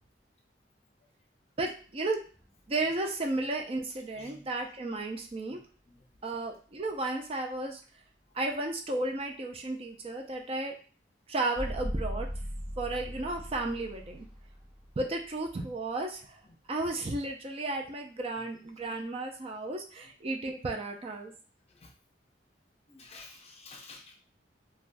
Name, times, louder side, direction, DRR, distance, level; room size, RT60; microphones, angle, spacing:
voice 1, 1.6-2.2 2.7-5.6 6.2-7.8 8.3-10.7 11.3-12.3 12.8-14.2 15.0-16.2 16.7-21.3, right 2 dB, 35° right, 2 dB, 0.4 m, -33 dB
sound 1, 2.3-3.3 5.0-5.1 11.6-16.2, equal, 5° right, 1.2 m, -39 dB
voice 2, 22.9-24.2, left 3 dB, 35° left, 2 dB, 0.6 m, -51 dB
3.4 x 2.2 x 2.5 m, 0.39 s
head